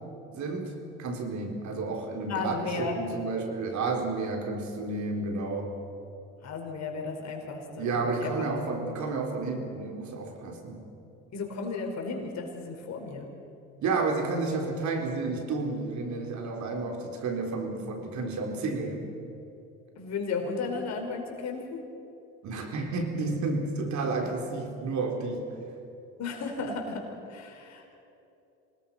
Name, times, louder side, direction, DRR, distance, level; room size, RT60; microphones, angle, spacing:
voice 1, 0.3-0.7 1.0-5.7 7.8-10.8 13.8-19.1 22.4-25.4, right 3 dB, 60° right, 2 dB, 4.2 m, -31 dB
voice 2, 2.3-3.0 6.4-8.3 11.3-13.3 20.0-21.8 26.2-27.8, left 4 dB, 55° left, 1 dB, 5.1 m, -34 dB
26.5 x 19.0 x 5.7 m, 2.9 s
supercardioid pair, 75°, 33 cm